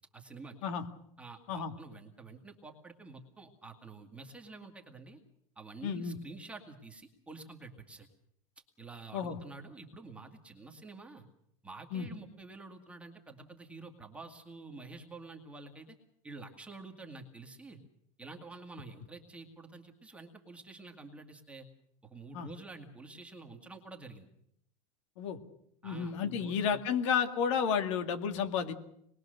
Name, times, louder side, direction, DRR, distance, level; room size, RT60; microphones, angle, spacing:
voice 1, 0.1-0.6 1.2-5.2 5.6-8.1 8.8-11.3 11.6-16.0 16.2-17.8 18.2-21.7 22.0-24.3 25.8-26.8, right 3 dB, 5° right, 2 dB, 1.9 m, -49 dB
voice 2, 5.8-6.2 9.1-9.4 11.9-12.1 22.3-22.5 25.2-25.4 25.8-28.7, left 7 dB, 60° left, 7 dB, 2.3 m, -31 dB
26.5 x 21.0 x 6.6 m, 0.74 s
supercardioid pair, 165°, 17 cm